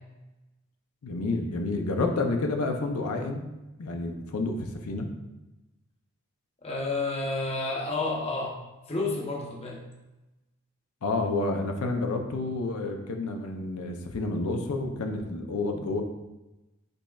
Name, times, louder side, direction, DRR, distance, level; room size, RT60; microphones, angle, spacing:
voice 1, 1.0-3.5 3.8-5.1 11.0-16.0, left 2 dB, 85° left, 4 dB, 0.5 m, -29 dB
voice 2, 6.6-8.6 8.9-9.9, left 3 dB, 25° left, -1 dB, 0.7 m, -30 dB
5.3 x 4.1 x 2.3 m, 1.0 s
head